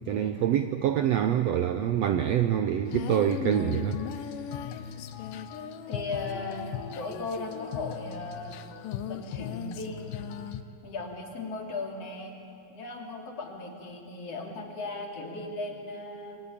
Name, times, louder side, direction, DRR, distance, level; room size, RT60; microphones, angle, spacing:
voice 1, 0.1-4.0, right 10 dB, 75° right, 8 dB, 1.6 m, -26 dB
Female singing, 2.9-10.6, left 9 dB, 80° left, 2.6 m, -37 dB
voice 2, 5.9-6.7 6.9-8.6 9.1-10.3 10.8-12.3 12.7-16.4, left 3 dB, 50° left, 1 dB, 3.8 m, -37 dB
28.0 x 22.5 x 8.6 m, 2.5 s
omnidirectional pair, 3.8 m